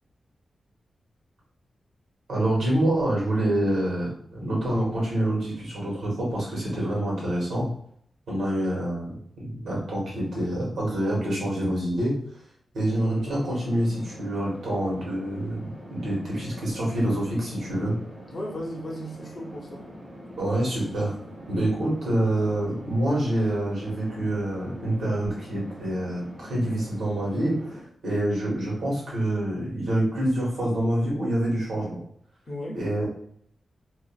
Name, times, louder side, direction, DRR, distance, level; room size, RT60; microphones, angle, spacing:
voice 1, 2.3-7.7 8.3-12.1 12.7-18.0 20.4-21.1 21.5-32.0 32.7-33.1, right 1 dB, 90° right, -4 dB, 1.3 m, -26 dB
sound 1, 13.0-27.8, equal, 15° right, 1.2 m, -44 dB
voice 2, 18.3-19.9 32.5-32.8, equal, 40° left, -1 dB, 0.6 m, -36 dB
2.5 x 2.4 x 2.3 m, 0.67 s
wide cardioid pair, 145°, 0 cm